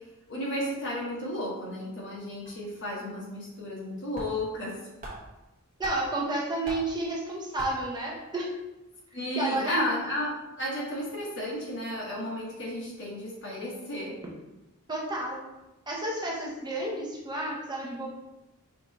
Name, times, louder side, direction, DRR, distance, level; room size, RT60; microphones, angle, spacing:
voice 1, 0.3-4.8 9.1-10.3 10.6-14.2, left 1 dB, 55° left, -4 dB, 1.3 m, -33 dB
sound 1, 2.2-2.3 2.5-2.6 3.8-3.9 4.1-4.7 5.0-6.2 6.6-7.0 7.6-8.0, right 2 dB, 40° right, 1.1 m, -40 dB
voice 2, 5.8-8.5 9.3-9.8 14.9-15.4 15.9-18.1, right 2 dB, 20° right, -3 dB, 0.7 m, -31 dB
5.1 x 3.0 x 2.9 m, 1.0 s
head